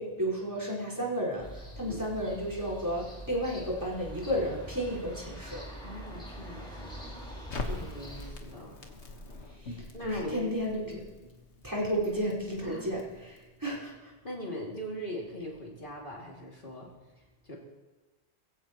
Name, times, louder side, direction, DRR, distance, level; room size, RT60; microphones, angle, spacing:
voice 1, 0.0-5.6 7.6-7.8 9.5-11.0 11.6-14.1, equal, 15° right, -4 dB, 4.8 m, -33 dB
sound 1, 1.4-8.3, equal, 5° left, 5.1 m, -44 dB
voice 2, 5.8-6.9 7.6-8.7 9.9-10.5 10.9-11.0 12.6-12.9 14.2-16.9 17.2-17.6, equal, 50° left, -3 dB, 2.7 m, -41 dB
Crackle, 7.5-13.6, left 2 dB, 90° left, 1.7 m, -43 dB
21.5 x 16.0 x 3.0 m, 1.2 s
omnidirectional pair, 1.1 m